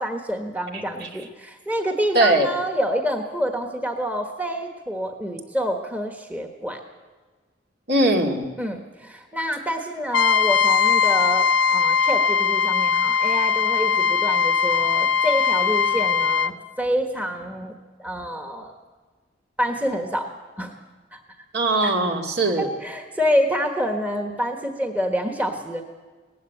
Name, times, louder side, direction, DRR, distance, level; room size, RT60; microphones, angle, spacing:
voice 1, 0.0-6.8 8.6-18.8 19.6-20.2 20.6-20.7 21.1-21.2 21.8-21.9 22.6-25.8, equal, 10° right, 3 dB, 1.4 m, -27 dB
voice 2, 0.7-1.1 2.1-2.5 7.9-8.4 21.5-22.7, right 2 dB, 55° right, 1 dB, 2.4 m, -21 dB
Trumpet, 10.1-16.5, left 6 dB, 75° left, 0.6 m, -20 dB
19.0 x 15.5 x 9.2 m, 1.4 s
head